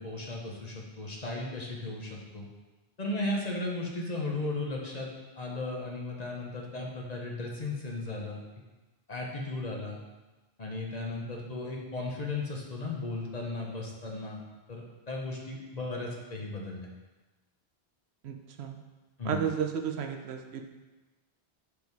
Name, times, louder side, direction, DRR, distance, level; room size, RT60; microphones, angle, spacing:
voice 1, 0.0-2.5 3.0-5.1 5.4-8.4 9.1-10.0 10.6-14.4 14.7-16.9 19.2-19.4, left 2 dB, 40° left, -1 dB, 1.0 m, -35 dB
voice 2, 18.2-18.8 19.2-20.7, right 8 dB, 75° right, 4 dB, 0.9 m, -33 dB
5.3 x 4.9 x 4.6 m, 1.2 s
omnidirectional pair, 1.1 m